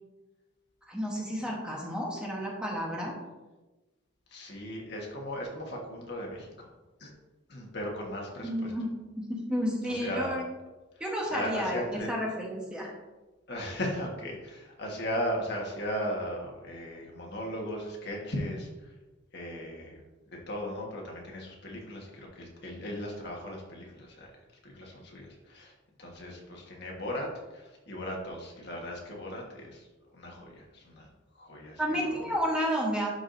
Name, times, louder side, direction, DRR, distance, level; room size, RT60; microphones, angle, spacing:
voice 1, 0.9-3.1 8.4-8.9 9.1-10.4 11.0-12.9 31.8-33.1, equal, 5° right, -3 dB, 1.2 m, -31 dB
voice 2, 4.3-6.7 7.0-7.1 7.5-8.7 9.8-10.4 11.2-12.1 13.5-18.9 19.3-20.0 20.3-24.3 24.6-25.7 26.0-29.9 30.1-31.1 31.3-32.4, equal, 55° left, -1 dB, 1.5 m, -37 dB
11.5 x 4.9 x 2.7 m, 1.1 s
head